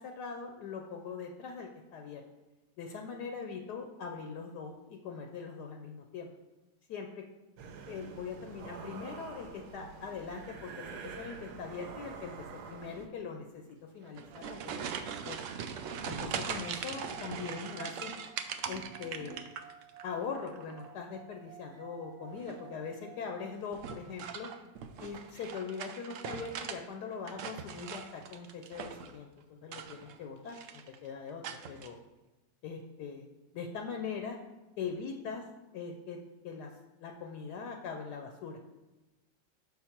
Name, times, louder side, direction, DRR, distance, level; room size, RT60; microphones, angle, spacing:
voice 1, 0.0-2.2 2.8-6.3 6.9-7.2 7.9-13.6 13.9-15.4 16.0-18.1 18.7-19.5 20.0-24.5 25.0-30.6 31.0-32.0 32.6-33.3 33.5-34.4 34.8-35.4 35.7-36.2 36.4-36.7 37.0-38.6, left 5 dB, 75° left, 3 dB, 1.1 m, -41 dB
sound 1, 7.6-13.1, right 5 dB, 70° right, 1.2 m, -46 dB
sound 2, 14.0-20.0 20.3-20.9 22.3-22.7 23.7-26.8 27.1-29.2 29.6-30.2 30.5-31.0 31.4-31.9, right 7 dB, 90° right, 0.6 m, -41 dB
sound 3, 16.0-23.6, right 9 dB, 55° right, 0.9 m, -56 dB
5.9 x 5.7 x 4.4 m, 1.1 s
omnidirectional pair, 1.9 m